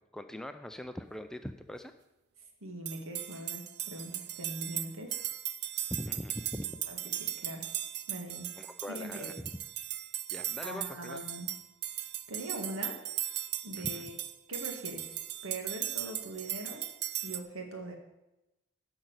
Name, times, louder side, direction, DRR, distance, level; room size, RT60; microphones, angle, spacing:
voice 1, 0.0-1.9 5.9-6.8 8.6-9.3 10.3-11.2 13.8-14.1, equal, 5° left, 8 dB, 0.4 m, -41 dB
voice 2, 2.6-5.3 6.9-7.0 7.4-7.7 8.1-8.5 8.9-9.3 10.6-11.5 12.3-13.0 13.6-14.1 14.5-15.2 15.4-16.8 17.2-18.0, right 1 dB, 80° right, 3 dB, 2.0 m, -41 dB
sound 1, 2.9-17.4, right 12 dB, 50° right, 0.5 m, -38 dB
10.5 x 6.0 x 8.0 m, 0.96 s
head